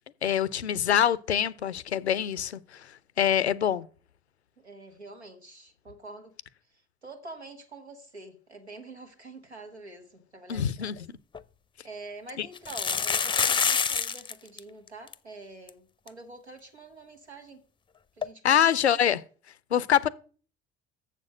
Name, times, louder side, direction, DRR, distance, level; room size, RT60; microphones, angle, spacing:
voice 1, 0.2-3.9 10.5-11.1 12.4-12.5 18.4-19.2 19.7-20.1, left 9 dB, 85° left, 0.6 m, -25 dB
voice 2, 4.6-6.3 6.7-10.9 11.8-17.6 18.2-18.7, right 2 dB, 85° right, 1.5 m, -46 dB
sound 1, 11.0-11.1 11.3-11.4 12.6-14.3 14.6-14.7 14.9-15.1 15.7-15.8 16.1-16.2 18.2-18.3, left 6 dB, 15° left, 0.6 m, -26 dB
7.2 x 6.6 x 7.4 m
figure-of-eight pair, 60°, 32 cm